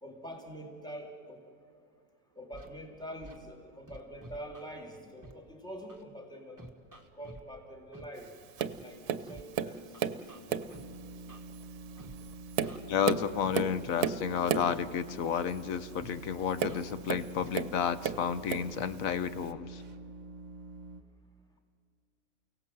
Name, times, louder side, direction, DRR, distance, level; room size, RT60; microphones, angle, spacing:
voice 1, 0.0-1.4 2.3-6.6 7.2-8.3 8.8-9.8 10.3-10.7, equal, 5° left, 1 dB, 2.9 m, -45 dB
Scratching (performance technique), 2.5-2.7 3.2-3.4 3.9-4.7 5.2-5.3 5.9-6.0 6.6-7.4 7.9-8.0 8.6-8.8 9.3-9.4 9.9-10.8 11.3-11.4 12.0-12.2 12.6-13.5 14.0-14.1 14.7-14.8 15.1-15.4 16.0-16.1 16.6-16.8 17.3-17.5 18.0-18.2 18.7-18.9, right 1 dB, 10° right, 1.7 m, -50 dB
Tap, 8.6-8.8 9.1-10.2 10.5-10.8 11.5-11.6 12.2-14.8 16.6-17.8 18.0-18.7 19.5-19.6, right 8 dB, 85° right, 1.3 m, -33 dB
sound 1, 10.7-21.0, right 3 dB, 35° right, 0.9 m, -47 dB
voice 2, 12.9-19.8, left 7 dB, 65° left, 14 dB, 1.1 m, -31 dB
29.5 x 17.5 x 7.7 m, 2.4 s
omnidirectional pair, 1.6 m